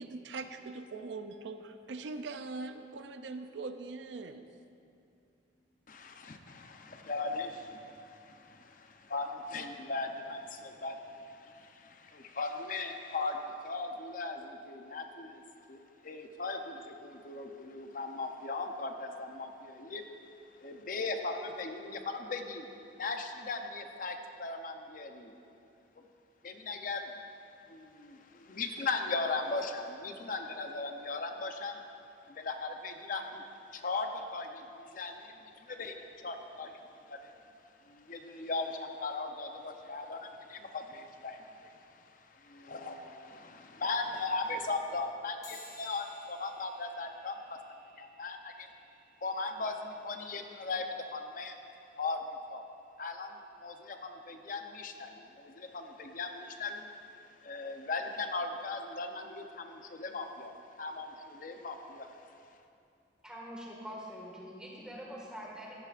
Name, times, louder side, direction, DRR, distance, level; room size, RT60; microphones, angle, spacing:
voice 1, 0.0-4.5, right 3 dB, 85° right, 8 dB, 0.4 m, -41 dB
voice 2, 5.9-15.4 15.7-20.1 20.6-22.7 23.0-25.3 26.0-26.1 26.4-27.1 27.7-31.8 32.3-33.4 33.7-37.3 37.8-47.6 48.0-48.7 49.2-51.5 52.0-52.6 53.0-56.9 57.4-62.2, left 3 dB, 50° left, 5 dB, 0.7 m, -38 dB
sound 1, 45.4-55.3, left 2 dB, 20° left, 1.4 m, -59 dB
voice 3, 63.2-65.7, equal, 5° right, -4 dB, 1.7 m, -44 dB
14.0 x 10.0 x 2.5 m, 2.6 s
head